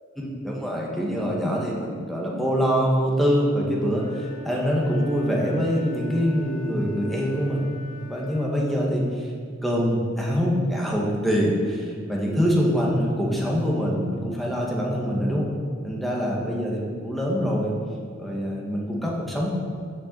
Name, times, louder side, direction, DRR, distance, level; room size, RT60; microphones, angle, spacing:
voice 1, 0.2-7.8 8.1-9.3 9.6-15.5 15.8-17.8 18.2-19.5, equal, ahead, -3 dB, 1.6 m, -24 dB
Wind instrument woodwind instrument, 3.9-8.5, left 2 dB, 25° left, 2.1 m, -43 dB
7.9 x 6.7 x 6.8 m, 2.1 s
head